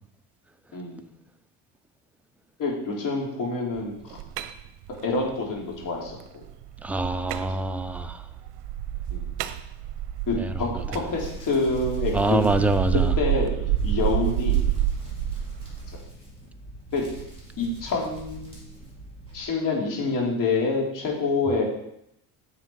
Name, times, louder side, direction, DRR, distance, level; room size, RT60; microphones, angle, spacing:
voice 1, 0.7-1.1 2.6-4.2 5.0-6.4 7.5-7.7 9.1-9.2 10.3-12.4 13.2-14.7 16.9-17.0 17.6-18.6 19.3-21.6, left 3 dB, 50° left, -2 dB, 3.4 m, -27 dB
sound 1, 3.8-15.9, right 11 dB, 75° right, 0.8 m, -29 dB
voice 2, 6.8-8.3 10.4-10.9 12.1-13.1, right 2 dB, 5° right, 7 dB, 0.5 m, -25 dB
Hands, 11.0-19.4, right 3 dB, 15° left, 4.6 m, -41 dB
9.6 x 7.4 x 4.7 m, 0.79 s
cardioid pair, 130°, 41 cm